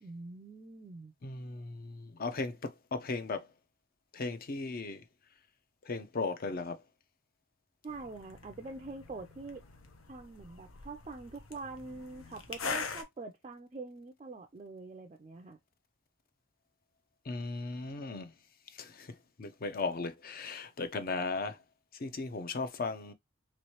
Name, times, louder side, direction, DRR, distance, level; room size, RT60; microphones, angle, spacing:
voice 1, 0.0-1.1 7.8-9.6 10.1-15.6, right 3 dB, 30° right, 0.3 m, -45 dB
voice 2, 1.2-3.5 4.1-5.1 5.8-6.8 17.2-18.3 18.7-21.6 21.9-23.1, left 3 dB, 45° left, 0.5 m, -37 dB
sound 1, 7.9-13.0, left 4 dB, 75° left, 0.8 m, -43 dB
3.1 x 3.0 x 2.9 m
head